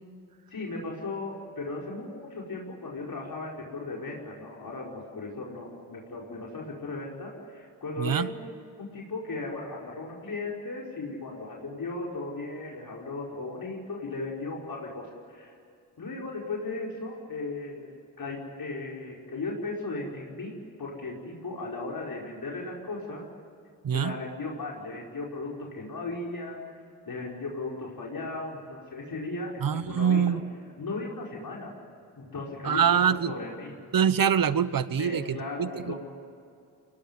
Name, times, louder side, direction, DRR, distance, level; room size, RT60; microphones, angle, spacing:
voice 1, 0.5-15.5 16.0-17.9 18.2-23.3 23.9-26.6 27.1-30.4 30.8-31.7 32.2-33.8 35.0-36.0, left 3 dB, 60° left, -2 dB, 5.3 m, -36 dB
voice 2, 8.0-8.3 23.8-24.1 29.6-30.4 32.6-33.3 33.9-36.0, right 8 dB, 55° right, 15 dB, 1.2 m, -24 dB
23.0 x 19.0 x 9.8 m, 2.4 s
cardioid pair, 55°, 40 cm